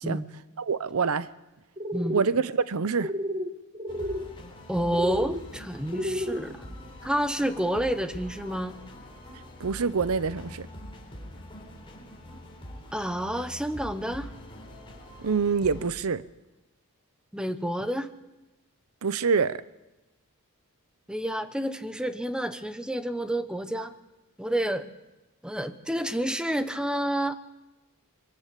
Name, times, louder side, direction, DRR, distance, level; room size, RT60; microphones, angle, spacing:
voice 1, 0.6-1.3 2.1-3.1 9.6-10.7 15.2-16.2 19.0-19.6, right 5 dB, 75° right, 0.6 m, -26 dB
sound 1, 1.8-2.3 3.0-3.5 3.7-4.2 4.9-5.4 5.9-6.4, equal, 25° right, 1.4 m, -31 dB
sound 2, 3.9-15.9, left 1 dB, 25° left, 3.6 m, -44 dB
voice 2, 4.7-6.8 7.0-8.8 12.9-14.3 17.3-18.1 21.1-23.9 24.4-24.9 25.4-27.4, right 1 dB, 5° right, 1.0 m, -29 dB
24.0 x 13.0 x 8.4 m
head